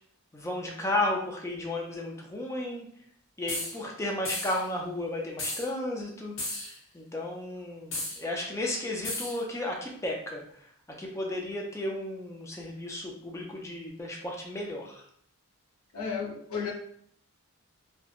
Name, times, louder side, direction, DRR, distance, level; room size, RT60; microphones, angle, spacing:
voice 1, 0.3-2.9 3.4-6.3 6.9-10.4 11.0-15.0, left 1 dB, 15° left, -1 dB, 0.4 m, -33 dB
sound 1, 3.5-3.8 4.3-4.6 5.4-5.7 6.4-6.8 7.9-8.2 9.0-9.4, left 2 dB, 65° left, 1.0 m, -34 dB
voice 2, 15.9-16.7, left 6 dB, 85° left, -3 dB, 0.8 m, -33 dB
2.8 x 2.2 x 2.4 m, 0.64 s
head